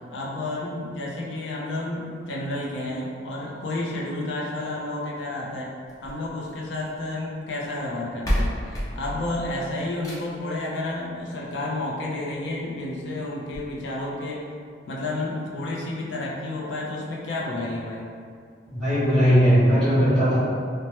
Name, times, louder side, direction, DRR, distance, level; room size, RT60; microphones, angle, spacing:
voice 1, 0.1-5.8 6.0-8.5 8.9-14.4 14.9-18.0, left 2 dB, 80° left, -4 dB, 0.5 m, -31 dB
sound 1, 5.9-7.1 7.9-8.0 8.2-10.5 11.9-12.0 12.5-12.6 12.8-12.9 13.5-13.6, equal, 20° left, 0.4 m, -30 dB
voice 2, 18.7-20.4, equal, 5° left, -19 dB, 1.4 m, -18 dB
3.1 x 2.1 x 2.9 m, 2.2 s
head